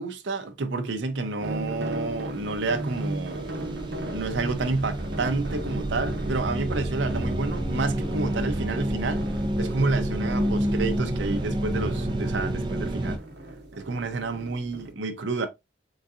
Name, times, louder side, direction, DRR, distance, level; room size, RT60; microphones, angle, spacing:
voice 1, 0.0-3.5 4.1-9.2 9.6-13.2 13.7-15.5, right 3 dB, 85° right, 0.6 m, -29 dB
sound 1, 1.4-14.9, right 1 dB, 70° right, 1.0 m, -37 dB
sound 2, 2.1-2.2 2.5-13.2, right 1 dB, 25° right, 0.5 m, -29 dB
3.9 x 3.8 x 2.4 m
head